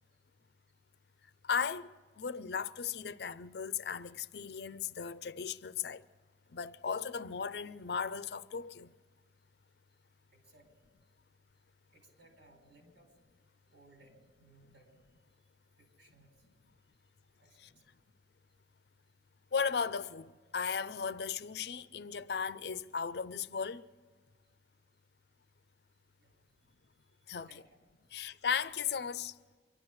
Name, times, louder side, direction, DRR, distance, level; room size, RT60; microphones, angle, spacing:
voice 1, 1.4-6.0 6.5-8.9 17.6-17.7 19.5-23.9 27.3-27.5 28.1-29.3, left 6 dB, 65° left, 0.5 m, -36 dB
voice 2, 10.3-10.7 11.0-11.1 11.9-13.1 13.7-14.9 15.8-16.5 16.9-17.0 17.4-17.8 26.2-26.3 27.3-27.8, right 2 dB, 85° right, 4.8 m, -63 dB
24.0 x 12.5 x 4.7 m
head